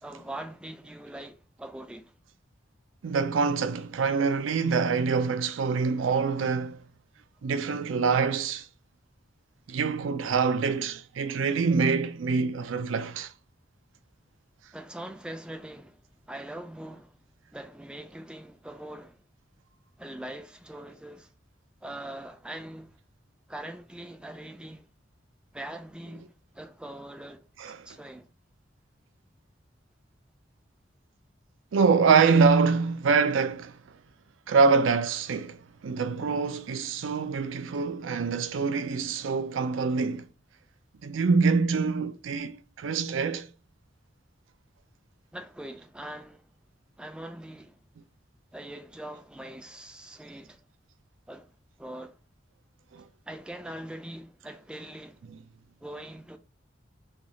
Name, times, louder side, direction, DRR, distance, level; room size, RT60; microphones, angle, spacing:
voice 1, 0.0-2.1 14.7-16.0 16.3-17.2 17.5-19.2 20.0-21.3 21.8-23.0 23.5-24.9 25.5-28.3 45.3-46.5 47.0-47.8 48.5-50.7 51.3-51.5 51.8-52.2 53.3-55.3 55.8-56.4, right 1 dB, 5° right, 0.3 m, -42 dB
voice 2, 3.0-6.8 7.4-8.7 9.7-13.3 27.6-27.9 31.7-33.8 34.5-40.3 41.0-43.5 52.9-53.0, right 5 dB, 85° right, 0.4 m, -25 dB
3.3 x 2.3 x 4.0 m
head